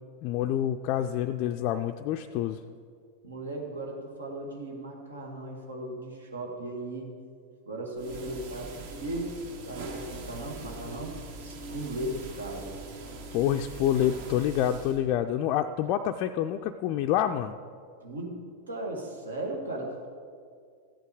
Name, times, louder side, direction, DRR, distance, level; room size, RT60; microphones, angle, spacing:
voice 1, 0.2-2.6 13.3-17.6, left 11 dB, 40° left, 5 dB, 0.4 m, -27 dB
voice 2, 3.2-7.1 7.7-9.3 9.6-11.1 11.4-12.7 18.0-18.3 18.7-20.1, right 1 dB, 75° right, 0 dB, 1.9 m, -37 dB
sound 1, 8.0-15.0, right 3 dB, 55° right, 1.7 m, -42 dB
14.5 x 8.2 x 4.9 m, 2.2 s
figure-of-eight pair, 90°, 0 cm